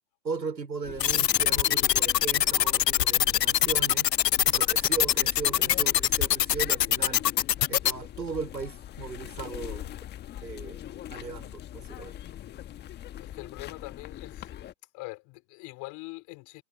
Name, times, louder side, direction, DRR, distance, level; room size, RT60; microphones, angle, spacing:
voice 1, 0.2-4.1 4.4-7.3 7.7-9.9 10.4-10.8 11.1-12.2, right 5 dB, 90° right, 4.9 m, -37 dB
sound 1, 0.8-14.7, left 12 dB, 20° left, 1.5 m, -42 dB
sound 2, 1.0-7.9, left 11 dB, 75° left, 0.8 m, -23 dB
voice 2, 13.2-14.5 14.9-16.6, left 25 dB, 35° left, 3.4 m, -42 dB
hypercardioid pair, 115°, 49 cm